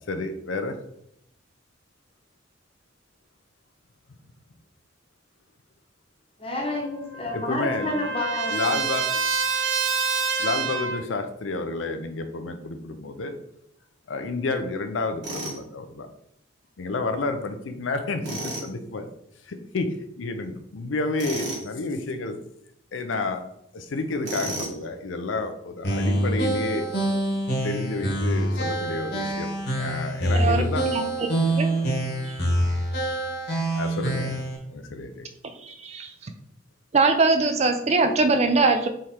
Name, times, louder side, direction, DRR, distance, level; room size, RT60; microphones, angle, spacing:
voice 1, 0.1-0.8 7.3-8.0 8.5-9.1 10.4-13.3 14.1-16.1 16.8-19.1 19.4-22.4 22.9-23.4 23.7-26.9 27.6-30.9 33.7-34.4 34.7-35.3, left 3 dB, 85° left, 7 dB, 0.5 m, -30 dB
voice 2, 6.4-8.9, left 1 dB, 30° left, 0 dB, 1.0 m, -30 dB
Trumpet, 6.7-11.0, right 5 dB, 85° right, 0.8 m, -27 dB
Tools, 15.2-15.6 18.2-18.7 21.2-21.7 24.2-24.8, right 2 dB, 65° right, 1.5 m, -32 dB
sound 1, 25.8-34.6, right 1 dB, 55° left, 1.2 m, -25 dB
voice 3, 31.4-31.9 32.2-32.3 35.6-36.3 36.9-38.9, right 3 dB, 35° right, 7 dB, 0.4 m, -22 dB
3.7 x 3.2 x 4.3 m, 0.73 s
head